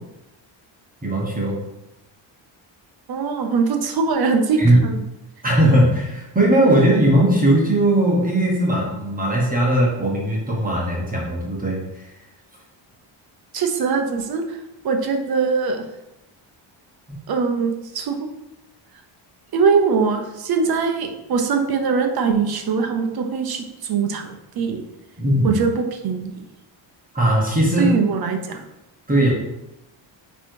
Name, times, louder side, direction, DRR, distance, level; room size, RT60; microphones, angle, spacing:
voice 1, 1.0-1.5 4.6-4.8 5.4-12.1 17.1-17.2 25.2-25.6 27.1-27.9 29.1-29.3, right 1 dB, 20° right, -3 dB, 1.4 m, -18 dB
voice 2, 3.1-5.0 13.5-14.6 14.8-15.8 17.3-18.1 19.5-24.8 25.4-26.4 27.8-28.6, right 5 dB, 50° right, 5 dB, 1.0 m, -22 dB
9.7 x 3.4 x 4.7 m, 0.92 s
cardioid pair, 170°, 47 cm